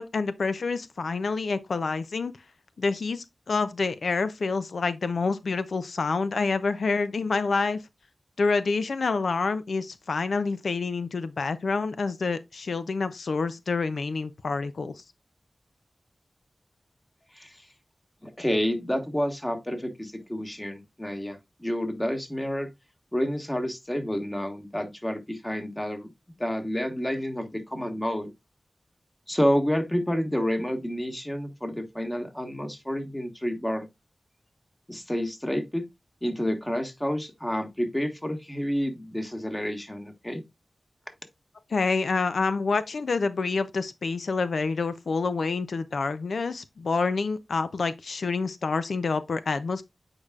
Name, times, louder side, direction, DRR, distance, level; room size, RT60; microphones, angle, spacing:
voice 1, 0.0-2.3 2.8-7.8 8.4-15.0 41.7-49.8, left 4 dB, 85° left, 0.4 m, -27 dB
voice 2, 18.2-22.7 23.1-26.1 26.4-28.3 29.3-33.9 34.9-35.8 36.2-40.4, equal, 15° left, 1.5 m, -29 dB
8.5 x 4.8 x 2.4 m
wide cardioid pair, 55°, 0 cm